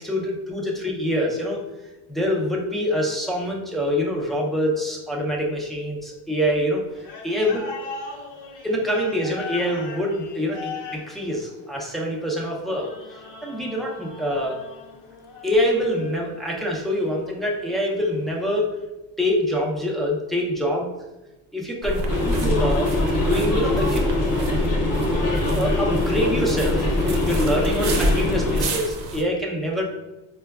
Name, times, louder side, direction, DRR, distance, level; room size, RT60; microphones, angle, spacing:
voice 1, 0.0-1.6 2.1-7.6 8.6-12.9 13.4-14.6 15.4-18.7 19.2-20.9 21.5-22.0 22.3-22.9 23.3-24.0 25.5-29.8, equal, ahead, -3 dB, 0.4 m, -25 dB
sound 1, 6.9-18.5, left 4 dB, 75° left, 0.9 m, -40 dB
sound 2, 21.8-29.2, right 1 dB, 60° right, 0.7 m, -29 dB
sound 3, 22.1-28.6, left 1 dB, 45° left, 0.8 m, -23 dB
4.4 x 2.2 x 2.2 m, 1.0 s
cardioid pair, 125°, 45 cm